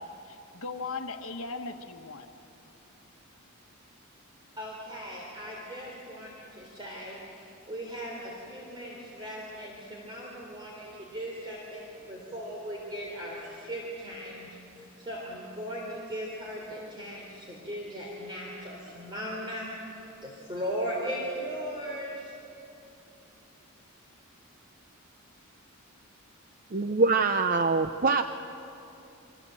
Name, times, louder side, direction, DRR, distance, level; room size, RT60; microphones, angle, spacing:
voice 1, 0.0-2.3, left 3 dB, 65° left, 5 dB, 1.3 m, -38 dB
voice 2, 4.6-22.3, equal, 20° right, -3 dB, 3.6 m, -38 dB
voice 3, 26.7-28.2, right 4 dB, 40° right, 8 dB, 0.6 m, -24 dB
29.0 x 24.0 x 7.8 m, 2.8 s
head